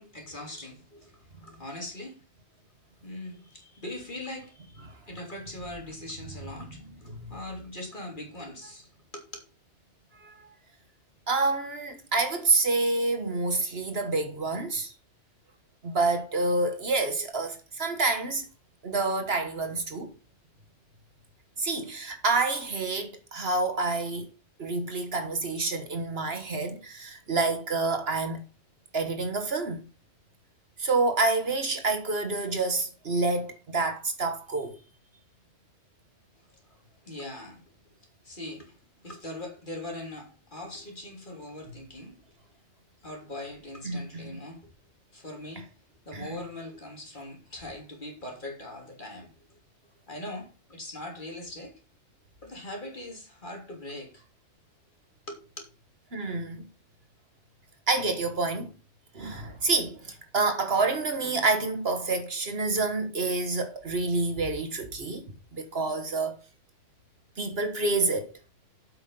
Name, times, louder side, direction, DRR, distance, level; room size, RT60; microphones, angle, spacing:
voice 1, 0.0-2.2 3.0-9.5 36.3-36.8 37.0-37.6 38.2-38.8 39.0-42.2 43.0-44.7 45.1-45.7 46.0-49.6 50.1-51.7 52.4-54.2 55.3-55.6, left 1 dB, 45° left, 3.1 m, -41 dB
voice 2, 11.3-14.9 15.8-18.4 18.8-20.1 21.6-24.3 24.6-28.4 28.9-29.8 30.8-34.8 43.8-44.3 46.1-46.3 56.1-56.6 57.9-58.7 59.1-65.2 65.5-66.4 67.4-68.3, right 3 dB, 60° right, 1.7 m, -28 dB
8.0 x 6.4 x 5.3 m
omnidirectional pair, 1.2 m